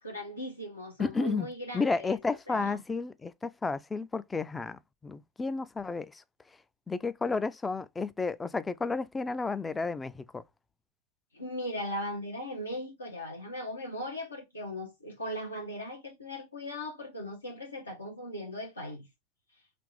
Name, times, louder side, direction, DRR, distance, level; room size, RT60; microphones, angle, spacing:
voice 1, 0.0-2.2 2.5-2.8 11.3-19.1, left 1 dB, 80° left, 1.1 m, -38 dB
voice 2, 1.0-1.5 1.7-6.2 6.9-10.4, left 4 dB, 10° left, 0.3 m, -32 dB
3.4 x 3.1 x 4.8 m
figure-of-eight pair, 90°, 0 cm